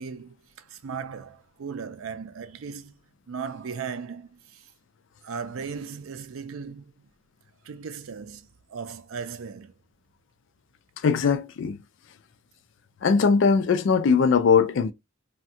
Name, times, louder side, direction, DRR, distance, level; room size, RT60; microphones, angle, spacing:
voice 1, 0.0-3.0 3.3-4.7 5.2-6.9 7.6-9.7, right 6 dB, 85° right, 0.4 m, -37 dB
voice 2, 11.0-11.8 13.0-14.9, left 5 dB, 65° left, 0.4 m, -20 dB
3.5 x 2.1 x 2.6 m
head